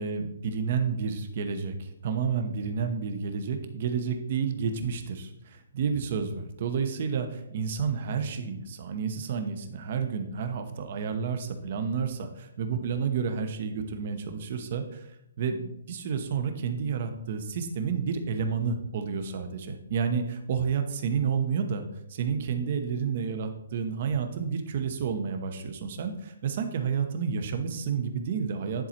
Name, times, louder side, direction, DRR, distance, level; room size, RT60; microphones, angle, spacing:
voice 1, 0.0-15.1 15.4-28.9, right 6 dB, 40° right, 7 dB, 0.9 m, -30 dB
10.5 x 4.1 x 4.4 m, 0.83 s
hypercardioid pair, 165°, 0 cm